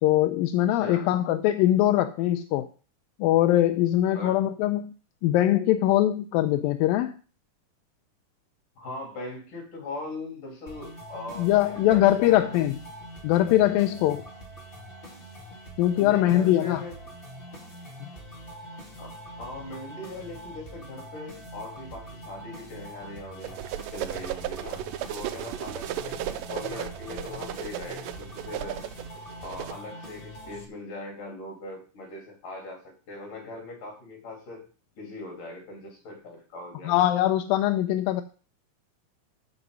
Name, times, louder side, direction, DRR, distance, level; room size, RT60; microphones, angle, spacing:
voice 1, 0.0-2.7 3.2-4.9 5.2-7.1 11.4-12.8 13.2-14.2 15.8-16.8 18.0-18.1 36.8-38.2, left 13 dB, 80° left, 8 dB, 2.3 m, -22 dB
voice 2, 0.8-1.1 4.1-4.4 8.8-12.6 15.9-17.0 19.0-23.6 23.9-28.8 29.4-34.6 35.0-37.0, left 2 dB, 65° left, 1 dB, 4.8 m, -40 dB
sound 1, 10.7-30.6, right 1 dB, 25° left, 1.2 m, -44 dB
sound 2, 23.4-29.7, right 12 dB, 80° right, 2.2 m, -35 dB
15.0 x 5.0 x 5.5 m, 0.37 s
omnidirectional pair, 4.2 m